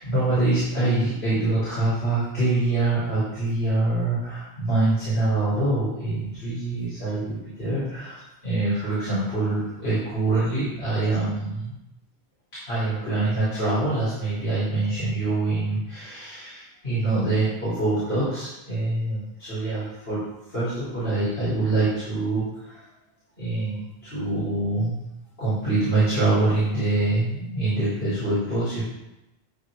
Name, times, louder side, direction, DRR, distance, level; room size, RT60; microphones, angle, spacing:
voice 1, 0.0-11.7 12.7-20.2 20.5-22.8 23.4-25.0 25.4-28.8, right 2 dB, 70° left, -11 dB, 4.7 m, -25 dB
13.0 x 4.9 x 5.2 m, 0.93 s
omnidirectional pair, 1.1 m